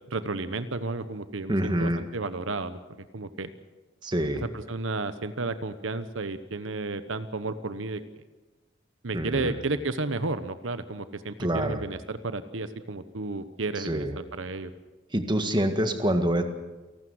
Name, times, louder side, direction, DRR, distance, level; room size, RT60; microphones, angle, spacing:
voice 1, 0.1-3.5 4.4-8.0 9.0-14.7, right 3 dB, 80° right, 12 dB, 1.0 m, -32 dB
voice 2, 1.5-2.0 4.0-4.4 9.1-9.6 11.4-11.8 13.9-14.1 15.1-16.4, right 1 dB, 25° right, 6 dB, 1.8 m, -26 dB
29.0 x 12.5 x 7.9 m, 1.2 s
head